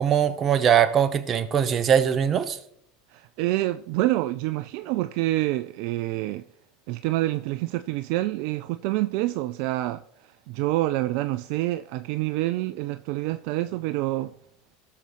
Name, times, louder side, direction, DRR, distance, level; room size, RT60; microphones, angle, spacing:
voice 1, 0.0-2.6, right 8 dB, 35° right, 0.9 m, -21 dB
voice 2, 3.1-6.4 6.9-10.0 10.5-14.3, right 17 dB, 60° right, 0.3 m, -27 dB
17.0 x 6.8 x 3.1 m
hypercardioid pair, 85°, 0 cm